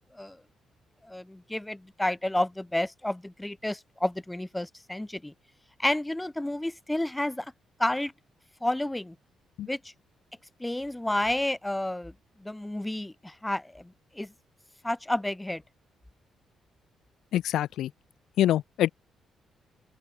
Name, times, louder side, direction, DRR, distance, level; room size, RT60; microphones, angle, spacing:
voice 1, 1.0-5.3 5.8-7.5 7.8-8.1 8.6-9.2 9.7-9.9 10.6-12.1 12.4-14.3 14.8-15.6, left 1 dB, 10° left, 7.2 m, -30 dB
voice 2, 17.3-17.9 18.4-18.9, left 12 dB, 80° left, 5.8 m, -25 dB
open air
cardioid pair, 100°, 0 cm